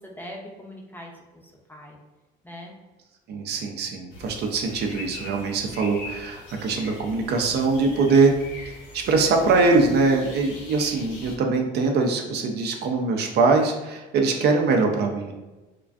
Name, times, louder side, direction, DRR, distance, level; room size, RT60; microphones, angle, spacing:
voice 1, 0.0-2.0 2.4-2.7, equal, 10° left, -1 dB, 0.5 m, -41 dB
voice 2, 3.3-8.3 8.9-15.3, right 3 dB, 60° right, 3 dB, 0.4 m, -22 dB
sound 1, 4.1-11.4, left 2 dB, 85° left, 0.8 m, -41 dB
2.4 x 2.2 x 2.3 m, 1.1 s
supercardioid pair, 85°, 19 cm